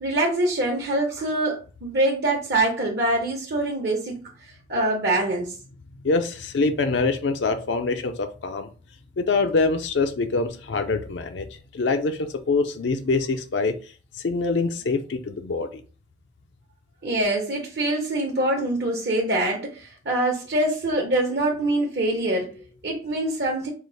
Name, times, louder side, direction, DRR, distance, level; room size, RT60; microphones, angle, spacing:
voice 1, 0.0-5.5 17.0-23.7, right 1 dB, 65° right, -1 dB, 0.9 m, -24 dB
voice 2, 6.0-8.7 9.2-11.5 11.7-13.8 14.2-15.7, left 3 dB, 90° left, 6 dB, 0.5 m, -24 dB
4.8 x 2.0 x 3.9 m, 0.37 s
head